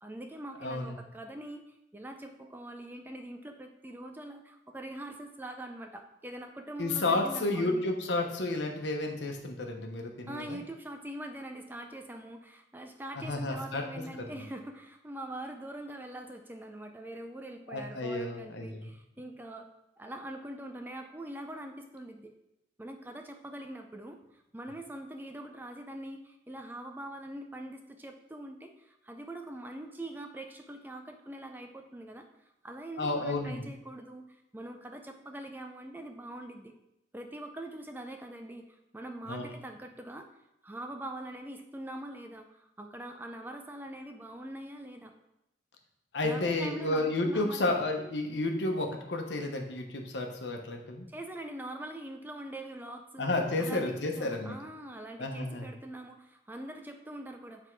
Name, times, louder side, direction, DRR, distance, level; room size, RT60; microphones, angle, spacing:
voice 1, 0.0-7.8 10.3-19.7 20.0-22.3 22.8-32.2 32.6-36.7 37.1-40.3 40.6-45.1 46.2-47.8 51.1-53.3 53.6-57.7, right 1 dB, 10° right, 5 dB, 0.5 m, -43 dB
voice 2, 0.6-1.0 6.8-10.6 13.2-13.9 14.1-14.3 17.7-18.9 33.0-33.7 39.3-39.4 46.1-51.1 53.2-54.5 55.2-55.7, left 2 dB, 85° left, 3 dB, 1.0 m, -31 dB
7.9 x 3.6 x 4.6 m, 0.86 s
head